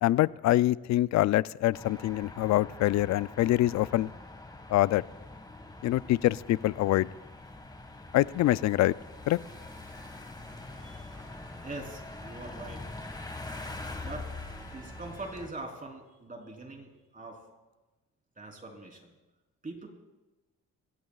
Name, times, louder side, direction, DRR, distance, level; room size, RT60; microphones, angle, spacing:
voice 1, 0.0-4.1 4.7-5.0 5.8-7.1 8.1-8.9 9.3-9.4, left 15 dB, 65° left, 19 dB, 0.4 m, -25 dB
sound 1, 1.7-15.5, left 2 dB, 15° left, 1.7 m, -44 dB
sound 2, 9.4-15.4, right 1 dB, 10° right, 2.7 m, -57 dB
voice 2, 11.6-12.8 14.0-17.4 18.4-19.0 19.6-19.9, right 2 dB, 25° right, 1 dB, 3.6 m, -43 dB
25.0 x 16.0 x 2.4 m, 1.1 s
cardioid pair, 90°, 30 cm